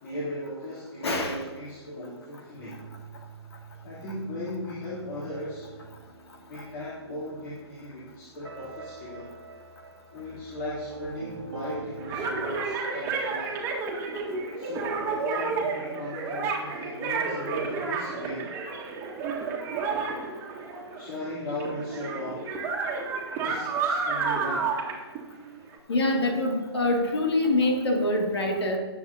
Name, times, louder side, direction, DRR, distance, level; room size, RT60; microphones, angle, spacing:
voice 1, 0.0-2.8 3.8-5.7 6.5-9.4 10.1-13.6 14.5-18.6 21.0-22.5 23.4-24.8, left 1 dB, 45° left, -8 dB, 3.1 m, -37 dB
voice 2, 1.0-1.4 25.9-28.8, left 2 dB, 65° left, 2 dB, 2.2 m, -25 dB
sound 1, 2.5-12.6, right 4 dB, 85° right, 1.4 m, -45 dB
sound 2, 12.0-21.2 21.5-25.8, right 4 dB, 20° right, 1.6 m, -31 dB
18.0 x 7.6 x 2.7 m, 1.4 s
figure-of-eight pair, 135°, 14 cm